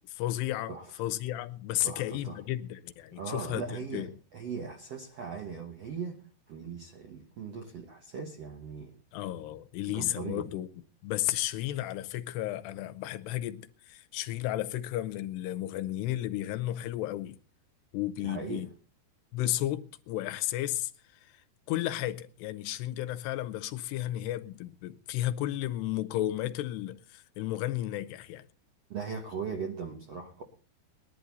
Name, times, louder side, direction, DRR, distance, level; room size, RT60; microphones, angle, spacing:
voice 1, 0.1-4.2 9.1-10.7 11.0-17.4 17.9-18.7 19.3-20.9 21.7-28.4, left 14 dB, 80° left, 2.8 m, -33 dB
voice 2, 1.8-2.4 3.1-6.2 6.5-8.9 9.9-10.5 18.2-18.7 28.9-30.4, right 5 dB, 65° right, 1.6 m, -39 dB
20.0 x 11.5 x 4.0 m
omnidirectional pair, 4.8 m